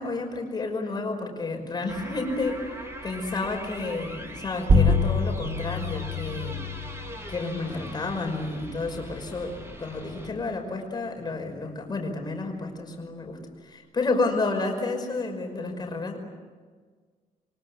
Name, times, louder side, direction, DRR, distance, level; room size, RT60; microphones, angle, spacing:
voice 1, 0.0-2.6 3.0-6.6 7.3-9.5 9.8-16.2, left 3 dB, 30° left, 3 dB, 5.6 m, -30 dB
sound 1, 1.9-10.3, equal, 20° right, 4.2 m, -41 dB
sound 2, 4.7-9.8, left 2 dB, 40° right, 3.5 m, -27 dB
29.0 x 24.0 x 8.1 m, 1.5 s
wide cardioid pair, 165°, 15 cm